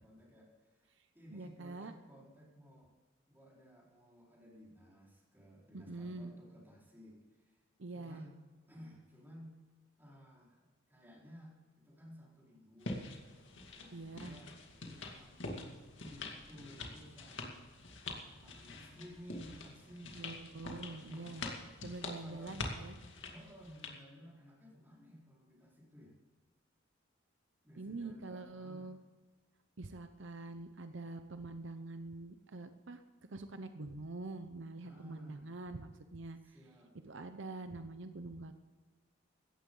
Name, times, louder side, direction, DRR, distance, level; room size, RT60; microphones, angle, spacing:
voice 1, 0.0-2.9 3.3-7.6 7.9-8.4 8.7-9.6 10.0-13.1 13.6-15.4 15.9-17.7 18.3-20.1 21.0-21.6 22.0-23.0 23.3-26.2 27.6-28.9 34.8-35.5 36.4-36.9, equal, 10° right, -4 dB, 4.6 m, -56 dB
voice 2, 1.0-1.9 5.7-6.3 7.8-8.3 13.9-14.4 20.2-21.5 21.8-23.0 27.8-29.0 29.8-33.0 33.3-36.5 37.0-38.5, right 2 dB, 65° right, 8 dB, 0.8 m, -45 dB
sound 1, 12.8-24.0, left 2 dB, 65° left, 2.3 m, -46 dB
17.0 x 13.5 x 3.9 m, 1.4 s
head